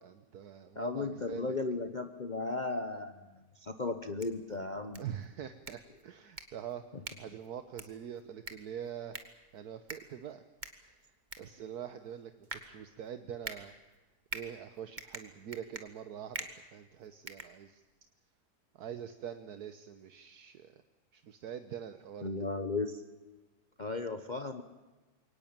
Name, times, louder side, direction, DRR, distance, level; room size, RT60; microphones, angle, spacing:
voice 1, 0.0-1.6 5.0-9.2 9.5-10.4 10.8-13.7 14.3-17.8 18.7-20.8 21.1-22.3, right 9 dB, 70° right, 9 dB, 1.5 m, -44 dB
voice 2, 0.8-3.2 3.6-5.0 22.2-23.0 23.8-24.6, left 3 dB, 30° left, 8 dB, 1.0 m, -35 dB
sound 1, 4.0-18.1, right 3 dB, 30° right, 2.0 m, -48 dB
23.5 x 18.5 x 8.8 m, 1.2 s
omnidirectional pair, 1.7 m